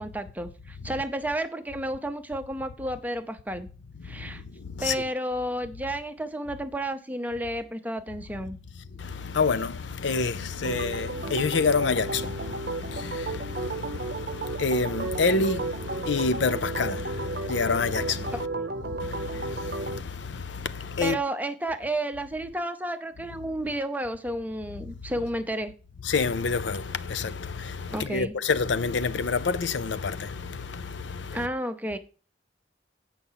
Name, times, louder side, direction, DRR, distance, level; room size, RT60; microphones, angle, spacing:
voice 1, 0.0-3.7 4.0-4.4 4.8-8.6 18.3-18.7 21.0-25.7 27.9-28.3 31.3-32.0, right 1 dB, 10° right, 0.7 m, -31 dB
voice 2, 4.1-5.0 8.9-18.5 18.9-21.2 26.0-31.5, left 4 dB, 85° left, 0.6 m, -28 dB
Organ, 10.6-20.0, right 3 dB, 55° right, 0.7 m, -33 dB
8.3 x 5.7 x 5.7 m
head